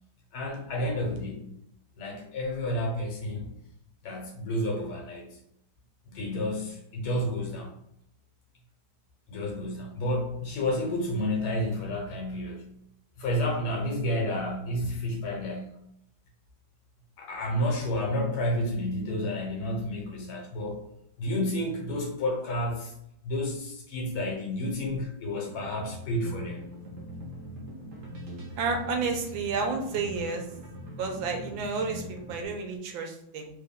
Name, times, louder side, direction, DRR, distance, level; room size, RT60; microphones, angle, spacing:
voice 1, 0.3-1.5 2.0-3.5 4.0-5.4 6.1-7.7 9.3-12.7 13.2-15.8 17.2-20.9 21.2-22.9 23.2-26.6, left 1 dB, 85° left, 0 dB, 1.8 m, -30 dB
sound 1, 25.4-32.5, equal, 60° right, 1.4 m, -42 dB
voice 2, 28.6-30.4 31.0-33.5, right 4 dB, 80° right, 3 dB, 1.4 m, -31 dB
3.9 x 3.5 x 2.2 m, 0.76 s
omnidirectional pair, 2.2 m